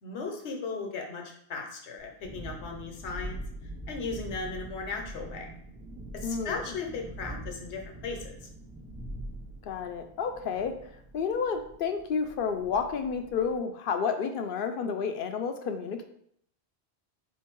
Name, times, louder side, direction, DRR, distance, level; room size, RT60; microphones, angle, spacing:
voice 1, 0.0-3.4 3.9-5.5 6.1-8.4, left 4 dB, 80° left, 2 dB, 1.1 m, -37 dB
Thunderstorm, 2.0-13.6, right 1 dB, 10° right, 0.3 m, -43 dB
voice 2, 6.2-6.7 9.6-16.0, left 6 dB, 60° left, 6 dB, 0.6 m, -31 dB
4.5 x 2.6 x 4.4 m, 0.68 s
omnidirectional pair, 1.1 m